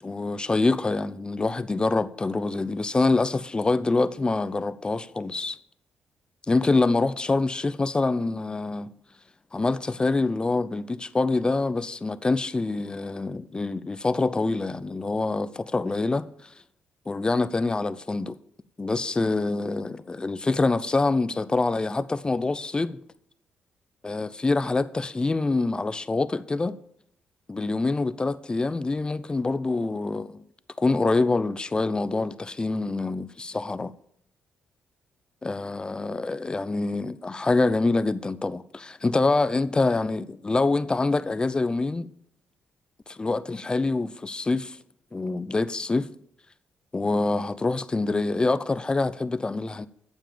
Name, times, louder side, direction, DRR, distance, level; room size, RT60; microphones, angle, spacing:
voice 1, 0.0-5.6 6.5-8.9 9.5-16.5 17.1-18.4 18.8-23.0 24.0-26.8 27.5-30.4 30.8-33.9 35.4-42.1 43.1-44.8 45.1-46.1 46.9-49.9, left 3 dB, 25° left, 0.6 m, -25 dB
9.1 x 7.2 x 7.0 m
cardioid pair, 70°, 4 cm